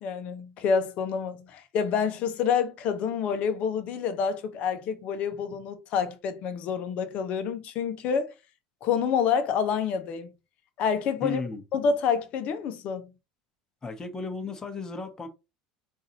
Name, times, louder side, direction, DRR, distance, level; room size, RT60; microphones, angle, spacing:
voice 1, 0.0-8.3 8.8-10.3 10.8-11.4 11.7-13.1, left 6 dB, 55° left, 0.9 m, -28 dB
voice 2, 11.2-11.6 13.8-15.3, left 4 dB, 25° left, 1.2 m, -34 dB
4.0 x 2.7 x 3.9 m
hypercardioid pair, 80°, 3 cm